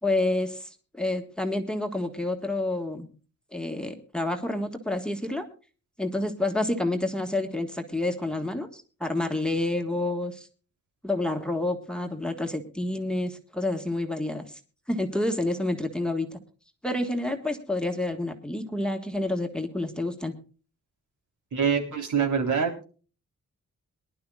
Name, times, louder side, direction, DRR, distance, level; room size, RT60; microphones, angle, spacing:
voice 1, 0.0-3.1 3.5-5.4 6.0-10.5 11.0-14.6 14.9-16.3 16.8-20.3, left 2 dB, 5° left, 5 dB, 1.6 m, -29 dB
voice 2, 21.5-22.8, right 6 dB, 80° right, 3 dB, 3.8 m, -25 dB
23.5 x 11.5 x 2.4 m, 0.37 s
wide cardioid pair, 170°, 30 cm